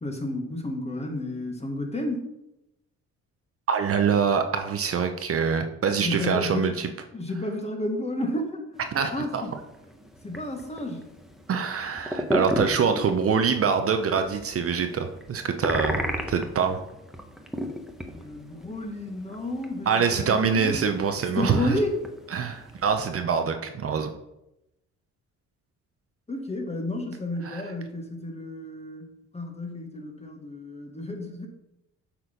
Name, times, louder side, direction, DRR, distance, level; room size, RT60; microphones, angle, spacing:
voice 1, 0.0-2.3 6.0-6.7 7.1-8.7 9.1-9.5 10.2-11.1 18.1-20.8 21.3-22.0 26.3-29.1 29.3-31.5, left 1 dB, 20° left, 3 dB, 1.6 m, -31 dB
voice 2, 3.7-6.9 8.9-9.4 11.5-16.0 16.3-16.8 19.9-21.8 22.3-24.1 27.4-27.6, right 6 dB, 50° right, 6 dB, 0.8 m, -25 dB
sound 1, 8.8-23.1, equal, ahead, 1.0 m, -35 dB
7.9 x 4.4 x 5.2 m, 0.88 s
cardioid pair, 90°, 30 cm